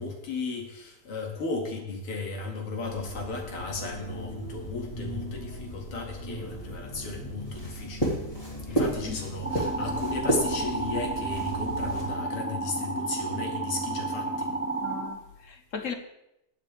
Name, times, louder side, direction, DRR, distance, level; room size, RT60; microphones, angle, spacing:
voice 1, 0.0-8.1 8.7-14.5, left 3 dB, 90° left, 2 dB, 2.9 m, -35 dB
sound 1, 2.8-12.0, right 1 dB, 15° left, 3.1 m, -34 dB
voice 2, 8.7-9.2 14.8-15.9, left 5 dB, 55° left, 7 dB, 0.9 m, -38 dB
sound 2, 9.4-15.1, right 3 dB, 5° right, 1.1 m, -31 dB
20.0 x 8.2 x 3.4 m, 0.85 s
omnidirectional pair, 2.4 m